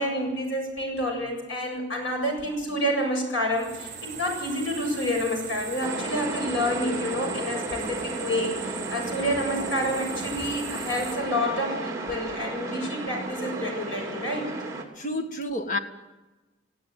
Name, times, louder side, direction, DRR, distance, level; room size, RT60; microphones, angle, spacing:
voice 1, 0.0-14.5, equal, 75° left, 7.5 m, -29 dB
sound 1, 3.5-11.1, right 7 dB, 40° right, 5.5 m, -39 dB
sound 2, 5.8-14.8, right 2 dB, 15° right, 2.8 m, -34 dB
voice 2, 15.0-15.8, left 1 dB, 40° left, 1.7 m, -29 dB
19.0 x 16.5 x 9.3 m
head